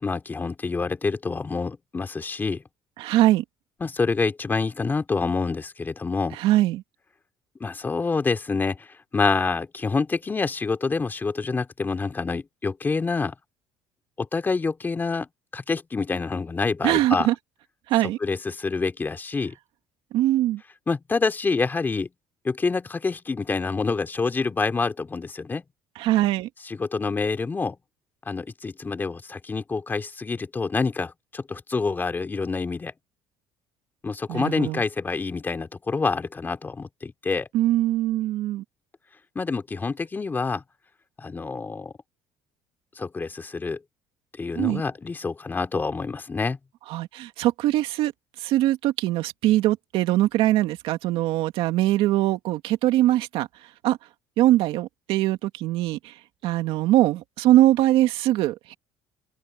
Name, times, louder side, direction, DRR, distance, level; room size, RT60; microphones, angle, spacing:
voice 1, 0.0-2.6 3.8-6.4 7.6-8.9 9.1-13.3 14.2-15.3 15.5-17.3 18.2-19.5 20.9-22.1 22.4-25.6 26.6-27.7 28.3-32.9 34.0-37.5 39.3-40.6 41.2-41.9 43.0-43.8 44.4-46.6, left 4 dB, 20° left, 3.1 m, -27 dB
voice 2, 3.0-3.4 6.3-6.8 16.8-17.3 17.9-18.2 20.1-20.6 26.0-26.5 34.3-34.8 37.5-38.6 44.6-44.8 46.9-48.1 48.4-53.5 53.8-54.0 54.4-56.0 56.4-58.7, right 15 dB, 70° right, 2.2 m, -22 dB
cardioid pair, 120°, 9 cm